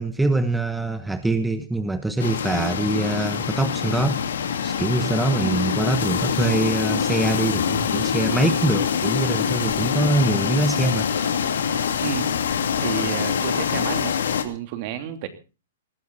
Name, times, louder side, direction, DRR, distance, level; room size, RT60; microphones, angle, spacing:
voice 1, 0.0-11.1, right 2 dB, 5° right, 9 dB, 1.2 m, -24 dB
sound 1, 2.2-14.4, left 7 dB, 80° left, 2.6 m, -24 dB
voice 2, 12.8-14.2 14.4-15.3, right 10 dB, 45° right, 8 dB, 2.9 m, -30 dB
19.5 x 14.0 x 4.1 m, 0.33 s
hypercardioid pair, 135°, 0 cm